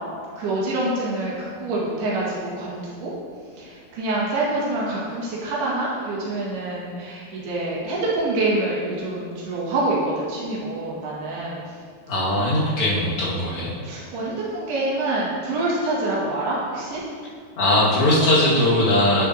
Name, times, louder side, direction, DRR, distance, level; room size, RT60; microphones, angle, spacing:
voice 1, 0.4-3.1 3.6-11.6 12.4-12.8 13.8-17.0, right 2 dB, 80° right, -6 dB, 3.8 m, -26 dB
voice 2, 12.1-13.7 17.6-19.3, left 1 dB, 45° left, -8 dB, 2.3 m, -20 dB
11.0 x 6.7 x 2.8 m, 2.1 s
omnidirectional pair, 4.5 m